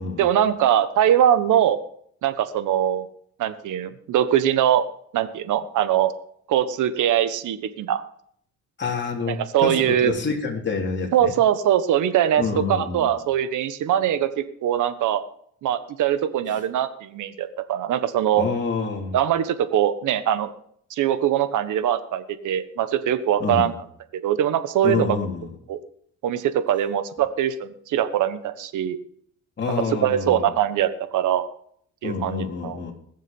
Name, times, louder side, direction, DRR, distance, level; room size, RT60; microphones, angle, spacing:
voice 1, 0.2-1.8 2.2-3.1 3.4-4.8 5.1-6.1 6.5-8.0 9.3-10.1 11.1-12.4 12.7-15.2 15.6-18.4 19.1-20.5 20.9-23.7 24.1-25.1 25.7-25.8 26.2-29.0 30.0-31.5 32.0-32.8, right 10 dB, 80° right, 11 dB, 1.3 m, -22 dB
voice 2, 8.8-11.3 12.4-13.1 16.5-16.6 18.4-19.2 23.4-23.7 24.8-25.5 29.6-30.6 32.0-32.9, left 5 dB, 35° left, 0 dB, 3.6 m, -27 dB
21.0 x 7.4 x 5.5 m, 0.63 s
cardioid pair, 90°, 30 cm